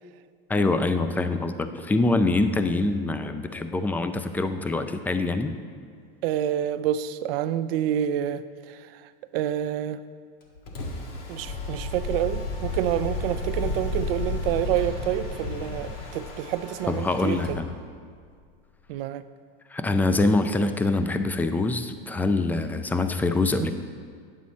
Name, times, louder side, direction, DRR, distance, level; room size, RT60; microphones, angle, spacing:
voice 1, 0.5-5.5 16.9-17.8 19.7-23.7, left 2 dB, 5° left, 9 dB, 0.3 m, -24 dB
voice 2, 6.2-10.0 11.3-17.6 18.9-19.2 23.6-23.7, right 11 dB, 70° right, 13 dB, 0.5 m, -28 dB
Mechanisms, 10.4-17.7, left 2 dB, 70° left, 1.7 m, -41 dB
sound 1, 11.5-16.4, left 3 dB, 30° left, 0.7 m, -31 dB
9.7 x 7.5 x 4.2 m, 2.1 s
hypercardioid pair, 105°, 30 cm